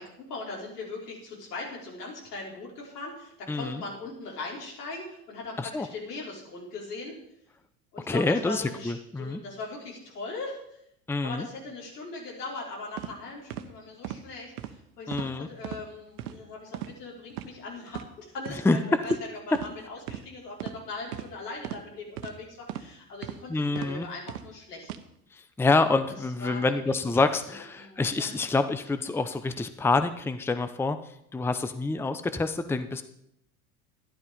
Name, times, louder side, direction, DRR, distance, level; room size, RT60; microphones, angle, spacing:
voice 1, 0.0-7.1 7.9-10.8 11.2-24.9 26.4-27.2 27.5-28.4, left 3 dB, 85° left, -3 dB, 5.3 m, -40 dB
voice 2, 3.5-3.8 5.6-5.9 8.1-9.4 11.1-11.5 15.1-15.5 18.6-18.8 23.5-24.1 25.3-31.0 31.3-33.0, left 3 dB, 5° left, 10 dB, 0.8 m, -27 dB
sound 1, 13.0-13.1 13.5-13.7 14.0-14.2 14.6-14.7 15.1-15.3 15.6-15.8 16.2-16.4 16.7-16.9 17.3-17.5 17.9-18.1 18.4-18.6 19.1-19.2 19.5-19.7 20.1-20.2 20.6-20.8 21.1-21.3 21.6-21.8 22.2-22.3 22.7-22.9 23.2-23.4 23.8-23.9 24.3-24.5 24.8-25.0, right 12 dB, 70° right, 1.2 m, -37 dB
12.5 x 11.5 x 5.4 m, 0.75 s
hypercardioid pair, 85°, 46 cm